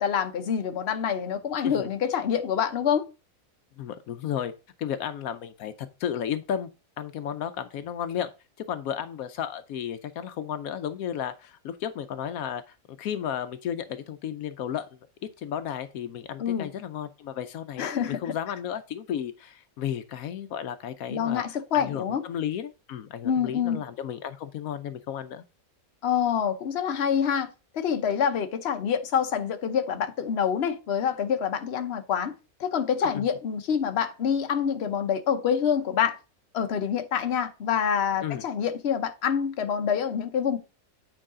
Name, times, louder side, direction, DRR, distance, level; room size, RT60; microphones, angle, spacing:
voice 1, 0.0-3.1 16.4-16.7 17.8-18.2 21.1-22.2 23.2-23.8 26.0-27.5 27.7-32.3 32.6-36.2 36.5-40.6, left 8 dB, 50° left, 1.1 m, -26 dB
voice 2, 3.8-4.5 4.8-5.7 6.0-6.7 7.0-8.3 8.6-14.9 15.2-21.4 21.7-25.4 33.0-33.2 38.2-38.4, left 9 dB, 80° left, 1.1 m, -33 dB
8.9 x 4.7 x 3.7 m
omnidirectional pair, 1.5 m